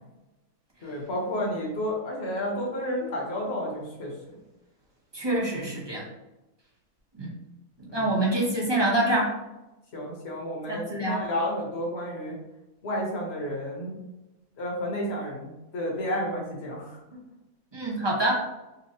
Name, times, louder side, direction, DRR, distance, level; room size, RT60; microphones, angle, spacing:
voice 1, 0.8-4.1 7.9-8.2 9.9-12.4 12.8-14.0 14.6-17.0, equal, 50° left, -2 dB, 1.2 m, -31 dB
voice 2, 5.1-6.1 7.1-7.3 7.9-9.3 10.7-11.2 17.7-18.4, right 1 dB, 25° right, -5 dB, 0.6 m, -26 dB
5.3 x 2.0 x 2.7 m, 0.99 s
omnidirectional pair, 1.6 m